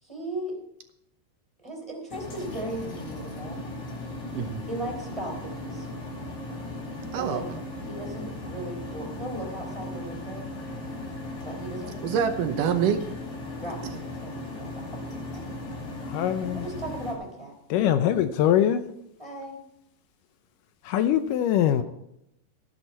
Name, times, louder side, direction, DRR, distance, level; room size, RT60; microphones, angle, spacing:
voice 1, 0.0-0.6 1.6-3.6 4.7-5.9 7.1-7.4 7.8-10.5 11.4-12.2 13.6-14.3 14.6-15.0 15.3-15.5 16.5-17.5 19.2-19.6 21.8-21.9, right 1 dB, 10° right, 0 dB, 3.0 m, -37 dB
sound 1, 2.1-17.1, left 2 dB, 60° left, 3.8 m, -37 dB
voice 2, 4.3-4.7 7.1-7.6 12.0-13.0 13.6-13.9, right 8 dB, 75° right, 7 dB, 2.4 m, -26 dB
voice 3, 16.1-16.6 17.7-18.8 20.9-21.8, left 10 dB, 80° left, 10 dB, 2.2 m, -22 dB
14.0 x 11.0 x 4.5 m, 0.80 s
omnidirectional pair, 4.0 m